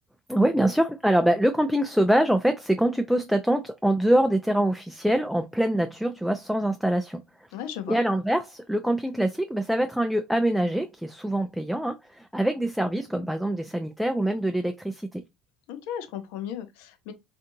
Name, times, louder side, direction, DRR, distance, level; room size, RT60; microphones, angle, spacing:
voice 1, 0.3-7.2 7.9-15.2, right 1 dB, ahead, 0.3 m, -24 dB
voice 2, 7.5-8.0 15.7-17.1, left 9 dB, 75° left, 0.6 m, -35 dB
2.6 x 2.5 x 2.6 m
hypercardioid pair, 75°, 2 cm